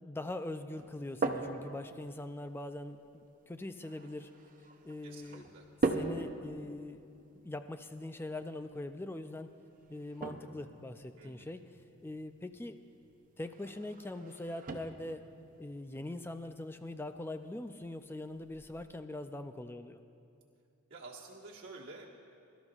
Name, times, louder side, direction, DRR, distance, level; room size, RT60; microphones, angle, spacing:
voice 1, 0.0-4.3 4.8-5.5 5.9-7.0 7.4-9.5 9.9-11.7 12.0-12.8 13.4-15.2 15.6-20.0, left 1 dB, 10° left, 9 dB, 0.3 m, -42 dB
sound 1, 0.8-18.8, right 2 dB, 40° right, 0.6 m, -42 dB
voice 2, 5.0-5.6 11.2-11.5 20.9-22.1, right 3 dB, 55° right, -5 dB, 1.5 m, -50 dB
22.5 x 12.5 x 2.4 m, 2.5 s
head